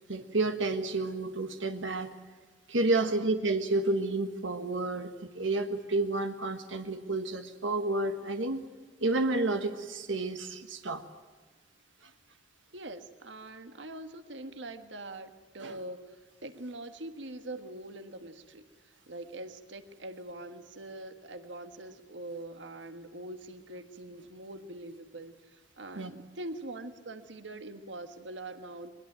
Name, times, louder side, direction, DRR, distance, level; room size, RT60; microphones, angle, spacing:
voice 1, 0.1-2.1 2.7-8.7 9.0-11.0 15.6-15.8 26.0-26.1, right 2 dB, 90° right, 7 dB, 1.5 m, -30 dB
voice 2, 2.9-3.3 12.7-28.9, right 2 dB, 70° right, 9 dB, 1.6 m, -43 dB
23.0 x 21.0 x 9.0 m, 1.4 s
head